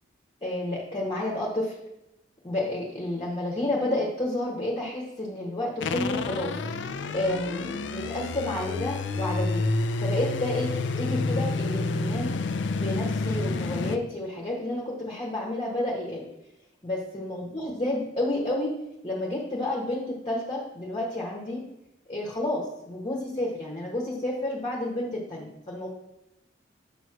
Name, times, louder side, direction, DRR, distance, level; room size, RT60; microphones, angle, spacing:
voice 1, 0.4-1.8 2.4-6.6 7.1-9.6 10.0-10.7 11.0-12.3 12.7-16.2 16.8-18.7 19.0-21.6 22.1-25.9, left 1 dB, 25° left, -4 dB, 1.3 m, -30 dB
sound 1, 5.8-14.0, left 3 dB, 65° left, 0.4 m, -29 dB
7.9 x 3.1 x 6.1 m, 0.90 s
head